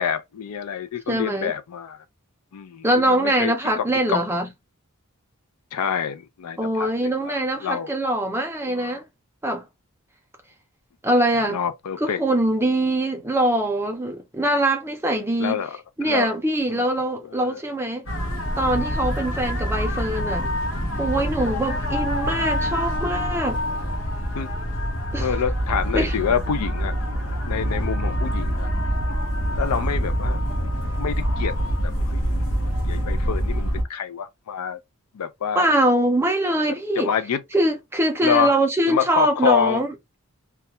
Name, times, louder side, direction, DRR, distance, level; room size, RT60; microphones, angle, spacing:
voice 1, 0.0-2.0 2.5-4.2 5.7-7.4 7.6-7.9 8.7-9.0 11.5-12.2 15.4-16.3 16.7-16.8 17.3-17.6 24.3-24.5 25.2-26.9 27.4-28.7 29.5-30.4 31.0-32.2 32.8-34.8 35.1-35.7 37.0-37.4 38.2-38.5 38.9-39.8, left 7 dB, 85° left, 0.4 m, -27 dB
voice 2, 1.1-1.5 2.8-4.5 6.6-9.0 9.4-9.6 11.0-11.6 12.0-15.6 16.0-18.0 18.6-20.5 21.0-23.6 25.1-25.3 25.9-26.1 35.5-37.1 37.5-39.9, right 1 dB, 10° right, 0.5 m, -23 dB
sound 1, 18.1-33.8, equal, 65° left, 0.8 m, -25 dB
2.3 x 2.1 x 2.8 m
head